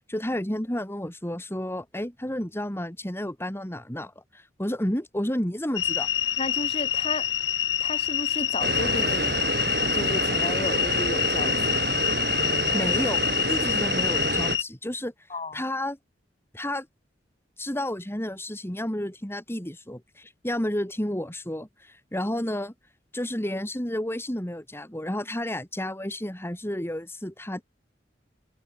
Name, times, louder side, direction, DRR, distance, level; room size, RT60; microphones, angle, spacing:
voice 1, 0.1-6.1 12.7-15.1 15.5-16.0 16.5-16.9 17.6-22.7 23.1-27.6, left 1 dB, 15° left, 3.1 m, -31 dB
sound 1, 5.8-14.6, left 10 dB, 90° left, 3.0 m, -26 dB
voice 2, 6.4-7.3 7.8-9.4 9.9-11.9 15.3-15.6, left 2 dB, 35° left, 3.4 m, -33 dB
sound 2, 8.6-14.6, right 3 dB, 60° right, 2.7 m, -28 dB
head